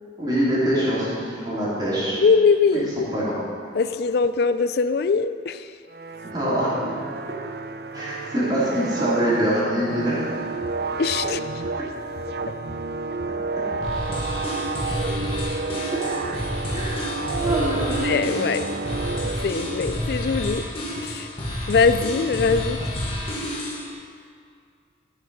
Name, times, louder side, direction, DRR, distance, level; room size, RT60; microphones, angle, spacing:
voice 1, 0.2-2.2 2.7-2.8 3.1-3.3 6.2-7.0 7.9-10.2 15.9-16.3 16.7-17.0 17.3-18.0, right 1 dB, 20° right, -9 dB, 3.2 m, -24 dB
voice 2, 2.2-3.1 3.7-5.7 11.0-11.4 18.0-18.6 19.4-20.6 21.0-21.3 21.7-22.8, left 5 dB, 55° left, 12 dB, 0.4 m, -21 dB
sound 1, 5.9-20.0, right 3 dB, 55° right, 0.5 m, -30 dB
sound 2, 10.6-10.7 11.1-11.4 11.6-17.9 18.1-23.0, left 1 dB, 85° left, 1.4 m, -41 dB
sound 3, 13.8-23.9, left 1 dB, 30° left, 1.7 m, -30 dB
13.5 x 6.5 x 5.5 m, 2.2 s
head